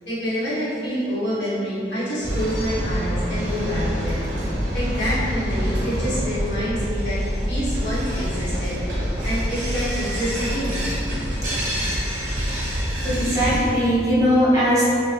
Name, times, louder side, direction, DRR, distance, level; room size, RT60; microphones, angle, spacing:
voice 1, 0.0-4.3 4.7-7.2 7.5-9.0 9.2-10.9, equal, 85° left, -9 dB, 1.4 m, -27 dB
sound 1, 2.2-13.6, equal, 45° right, 0.9 m, -26 dB
voice 2, 13.0-14.8, equal, 20° right, -10 dB, 1.2 m, -19 dB
4.3 x 2.5 x 3.4 m, 2.6 s
head